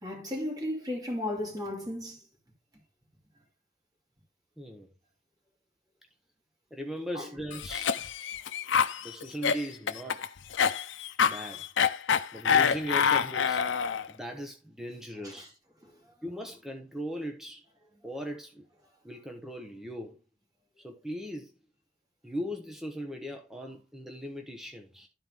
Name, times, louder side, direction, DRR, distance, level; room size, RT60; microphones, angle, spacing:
voice 1, 0.0-2.2 7.1-7.3 15.2-15.5, left 1 dB, 20° right, 2.5 m, -34 dB
voice 2, 4.6-4.9 6.7-7.9 9.0-10.2 11.3-11.6 12.3-13.6 14.1-15.5 16.2-17.6 18.0-18.7 19.0-20.2 20.8-21.5 22.2-25.1, equal, ahead, 1.0 m, -38 dB
Cough, 7.5-14.1, left 7 dB, 80° left, 0.6 m, -26 dB
12.5 x 4.5 x 3.6 m
head